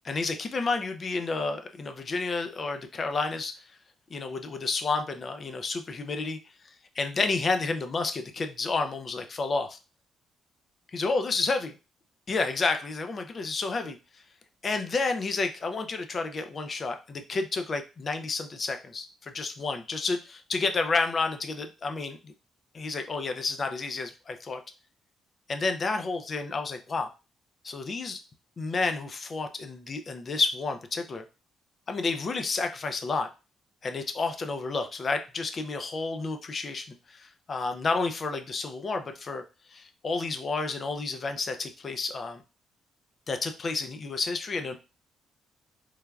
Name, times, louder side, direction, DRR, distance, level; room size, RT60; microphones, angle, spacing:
voice 1, 0.0-3.6 4.1-6.4 7.0-9.8 10.9-11.7 12.3-14.0 14.6-22.3 22.7-24.6 25.5-27.1 27.6-28.2 28.6-31.2 31.9-33.3 33.8-39.4 39.7-42.4 43.3-44.8, left 3 dB, 40° left, 7 dB, 0.4 m, -30 dB
3.2 x 2.2 x 2.3 m, 0.30 s
cardioid pair, 90°, 0 cm